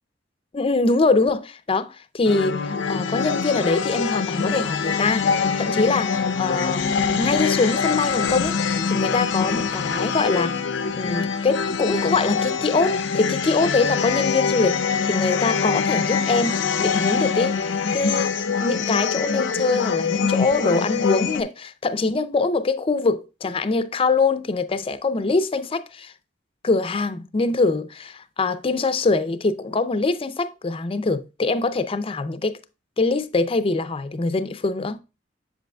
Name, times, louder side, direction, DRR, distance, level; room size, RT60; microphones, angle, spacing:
voice 1, 0.5-10.6 10.9-18.3 18.6-26.1 26.6-32.6 33.0-35.0, left 3 dB, 30° left, 0.5 m, -23 dB
sound 1, 2.2-21.4, left 5 dB, 85° left, 0.6 m, -24 dB
7.6 x 6.9 x 2.2 m
head